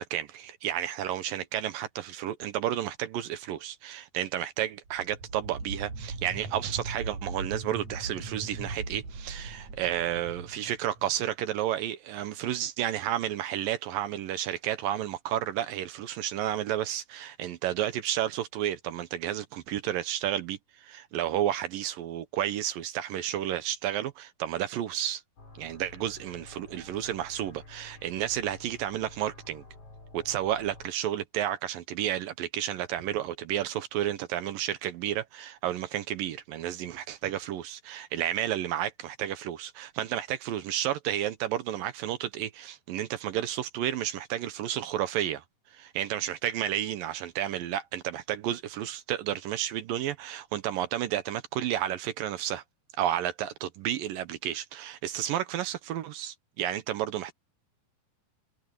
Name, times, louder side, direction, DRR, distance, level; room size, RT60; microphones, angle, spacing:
voice 1, 0.0-25.2 25.6-29.6 30.1-45.4 45.7-52.6 53.0-57.3, right 11 dB, 70° right, 2.4 m, -31 dB
sound 1, 4.9-11.3, right 3 dB, 45° right, 7.4 m, -39 dB
sound 2, 25.4-30.9, left 2 dB, 35° left, 6.8 m, -50 dB
omnidirectional pair, 4.5 m